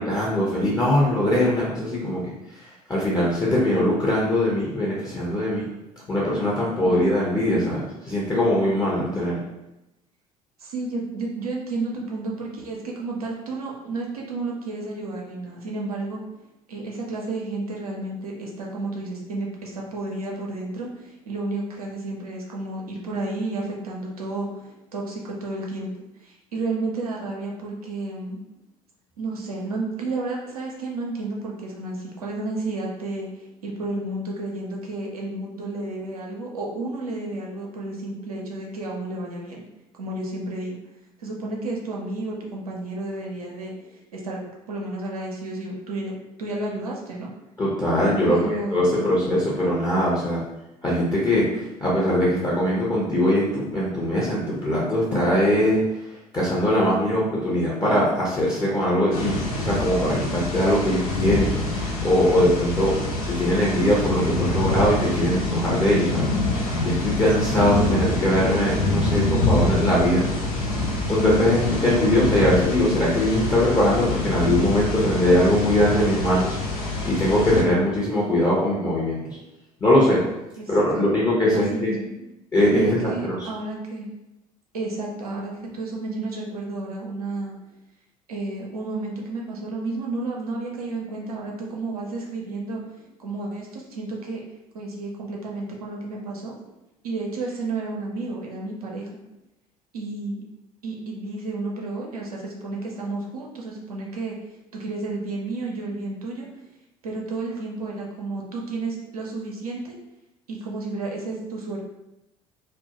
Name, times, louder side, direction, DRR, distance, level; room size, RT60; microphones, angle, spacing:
voice 1, 0.0-2.3 2.9-5.7 6.1-7.8 8.1-9.4 47.6-48.4 48.7-50.4 50.8-55.8 56.3-62.9 63.3-66.3 66.8-70.2 71.1-76.5 77.0-79.2 79.8-80.2 80.7-81.9 82.5-83.5, left 1 dB, 20° left, -6 dB, 0.7 m, -21 dB
voice 2, 10.6-16.2 16.7-24.5 24.9-25.9 26.2-28.4 29.2-33.3 33.6-39.6 40.0-40.8 41.2-43.7 44.1-44.4 44.7-47.3 48.3-48.9 67.6-68.1 80.6-81.0 81.5-82.3 82.7-84.1 84.7-87.5 88.3-92.8 93.2-94.4 94.7-96.5 97.0-99.1 99.9-100.4 100.8-104.3 104.7-106.5 107.0-109.9 110.5-111.8, right 2 dB, 80° right, -2 dB, 0.5 m, -31 dB
sound 1, 59.1-77.6, left 2 dB, 75° left, 0.5 m, -25 dB
2.1 x 2.1 x 2.8 m, 0.93 s
figure-of-eight pair, 60°, 19 cm